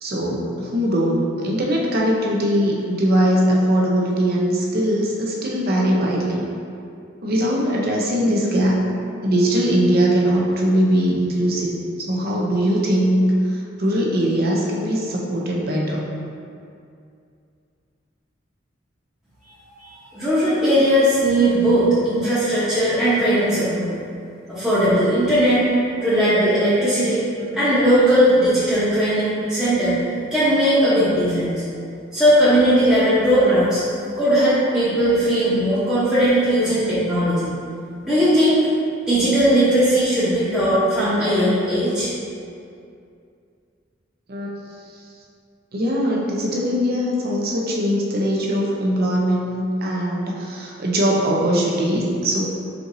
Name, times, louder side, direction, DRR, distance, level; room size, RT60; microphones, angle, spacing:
voice 1, 0.0-6.5 7.2-8.8 9.2-11.7 12.0-16.0 27.5-27.7 33.4-33.5 44.3-44.5 45.7-52.4, equal, 55° right, -2 dB, 0.7 m, -21 dB
voice 2, 19.8-23.9 24.5-25.6 26.0-27.3 27.5-31.6 32.1-33.8 34.2-37.5 38.0-38.6 39.1-42.1, equal, 5° right, -13 dB, 0.8 m, -18 dB
4.4 x 4.0 x 2.6 m, 2.4 s
head